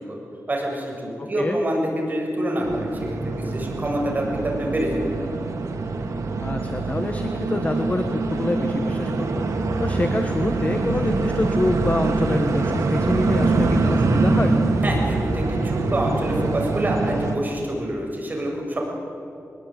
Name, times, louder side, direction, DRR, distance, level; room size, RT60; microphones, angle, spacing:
voice 1, 0.5-5.0 14.8-18.8, right 1 dB, 35° right, -1 dB, 7.0 m, -26 dB
voice 2, 1.2-1.6 6.4-14.6, left 2 dB, 25° left, 6 dB, 1.4 m, -26 dB
sound 1, 2.6-17.4, right 3 dB, 85° right, 2.3 m, -24 dB
22.0 x 20.5 x 9.4 m, 2.6 s
wide cardioid pair, 100°, 5 cm